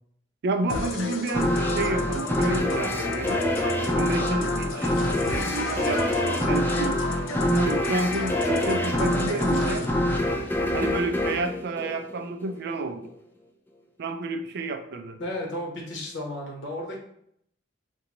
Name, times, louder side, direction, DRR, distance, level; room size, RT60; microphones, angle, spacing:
voice 1, 0.4-3.5 4.0-7.0 7.5-9.9 10.7-13.1 14.0-15.2, right 3 dB, 55° right, 7 dB, 0.3 m, -30 dB
sound 1, 0.7-9.9, left 4 dB, 85° left, 0.4 m, -34 dB
sound 2, 1.3-12.5, left 1 dB, 10° left, 0.4 m, -26 dB
voice 2, 15.2-17.0, left 1 dB, 65° left, -2 dB, 1.0 m, -33 dB
3.8 x 2.2 x 2.9 m, 0.71 s
head